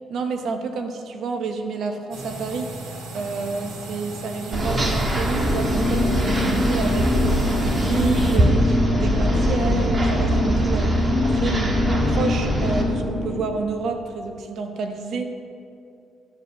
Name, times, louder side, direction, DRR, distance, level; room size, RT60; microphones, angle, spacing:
voice 1, 0.1-2.7 3.1-11.8 12.0-15.2, right 4 dB, 70° right, 6 dB, 1.0 m, -29 dB
sound 1, 2.1-8.4, right 2 dB, 90° right, 2.0 m, -36 dB
sound 2, 4.5-12.8, right 1 dB, 35° right, 1.5 m, -22 dB
sound 3, 5.3-13.4, left 2 dB, 50° left, 2.1 m, -25 dB
13.0 x 5.2 x 6.6 m, 2.6 s
cardioid pair, 90°, 0 cm